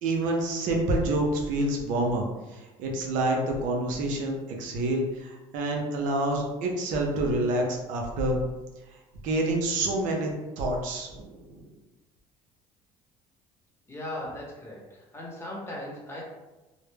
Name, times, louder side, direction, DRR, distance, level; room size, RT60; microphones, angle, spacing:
voice 1, 0.0-2.2 2.5-8.4 9.2-10.3 10.6-11.7, right 2 dB, 75° right, 1 dB, 0.6 m, -27 dB
voice 2, 13.9-16.2, left 1 dB, 20° left, -3 dB, 0.9 m, -38 dB
2.1 x 2.0 x 3.2 m, 1.1 s
supercardioid pair, 85°, 14 cm